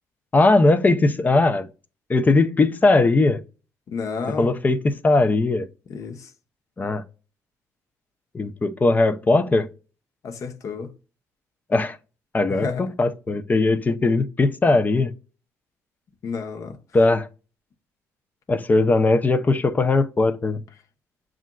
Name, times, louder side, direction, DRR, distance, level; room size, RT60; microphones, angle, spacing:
voice 1, 0.3-1.7 2.1-3.4 4.4-5.7 6.8-7.0 8.3-9.7 11.7-12.0 12.3-15.1 16.9-17.3 18.5-20.6, left 2 dB, 25° left, 0.5 m, -19 dB
voice 2, 3.9-4.6 5.9-6.3 10.2-10.9 12.5-12.8 16.2-16.8, left 5 dB, 55° left, 0.8 m, -31 dB
7.1 x 2.5 x 2.2 m
cardioid pair, 90°, 6 cm